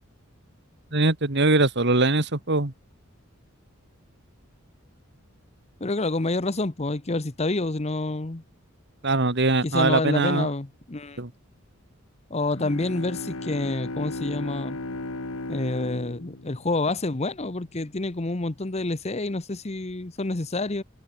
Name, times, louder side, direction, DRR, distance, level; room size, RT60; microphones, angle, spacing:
voice 1, 0.9-2.7 9.0-10.5 11.2-11.3, right 2 dB, 55° right, 2.0 m, -22 dB
voice 2, 5.8-8.4 9.6-11.2 12.3-14.8 15.5-20.8, left 2 dB, 30° left, 0.9 m, -28 dB
Bowed string instrument, 12.5-17.5, left 2 dB, 80° left, 2.0 m, -36 dB
head